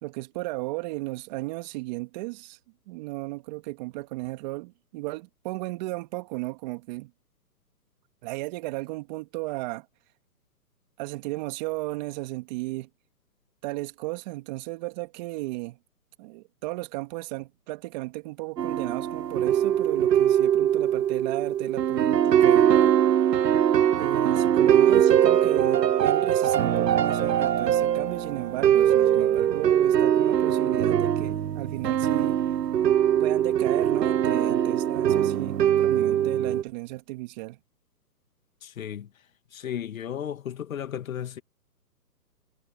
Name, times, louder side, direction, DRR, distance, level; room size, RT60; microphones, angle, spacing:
voice 1, 0.0-2.6 2.9-7.1 8.2-9.9 11.0-12.9 13.6-15.8 16.2-22.9 24.0-32.4 33.2-37.6, right 22 dB, 25° right, 2.4 m, -34 dB
sound 1, 18.6-36.6, right 10 dB, 75° right, 0.9 m, -22 dB
voice 2, 38.6-39.1 39.5-41.4, left 9 dB, 55° left, 2.1 m, -34 dB
hypercardioid pair, 150°, 50 cm